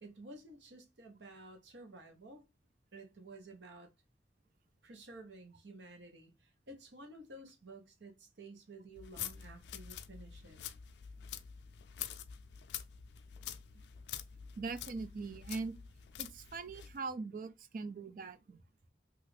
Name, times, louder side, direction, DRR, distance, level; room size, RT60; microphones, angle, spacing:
voice 1, 0.0-2.4 2.9-3.9 4.8-10.6, right 2 dB, 85° right, 0.9 m, -53 dB
sound 1, 8.9-17.0, left 10 dB, 75° left, 0.4 m, -46 dB
voice 2, 14.6-15.8 16.2-18.6, right 4 dB, 50° right, 0.3 m, -41 dB
3.0 x 2.4 x 3.2 m
head